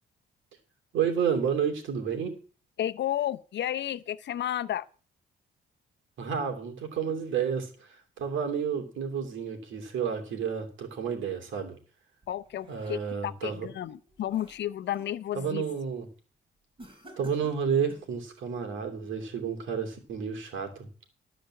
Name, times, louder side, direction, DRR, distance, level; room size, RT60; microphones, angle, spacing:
voice 1, 0.9-2.4 6.2-11.8 12.7-13.7 15.3-16.1 17.2-20.9, right 7 dB, 75° right, 2.8 m, -31 dB
voice 2, 2.8-4.9 12.3-15.6, left 12 dB, 65° left, 0.7 m, -32 dB
sound 1, 12.2-13.4 13.8-15.2 15.6-15.9 16.8-18.1, right 1 dB, 25° right, 4.9 m, -53 dB
12.5 x 5.0 x 7.7 m
cardioid pair, 90°, 20 cm